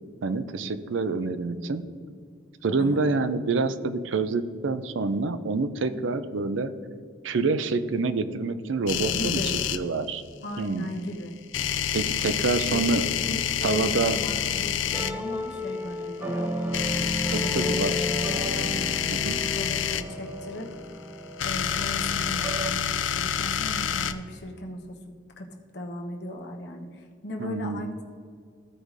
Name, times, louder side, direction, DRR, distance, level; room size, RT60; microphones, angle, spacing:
voice 1, 0.2-1.8 2.6-6.7 7.2-9.4 9.7-10.2 10.6-10.9 11.9-13.1 13.6-14.2 17.3-18.0 19.1-19.4 27.4-27.9, right 3 dB, 80° right, 12 dB, 0.5 m, -27 dB
sound 1, 8.9-9.8 11.5-15.1 16.7-20.0 21.2-24.1, left 9 dB, 80° left, 0.4 m, -28 dB
voice 2, 9.0-9.5 10.4-11.4 12.7-16.5 17.4-17.8 18.6-20.7 21.4-28.0, left 1 dB, 60° left, 3 dB, 1.0 m, -37 dB
sound 2, 14.3-22.7, equal, 10° right, 0.4 m, -33 dB
14.5 x 5.1 x 3.2 m, 2.1 s
head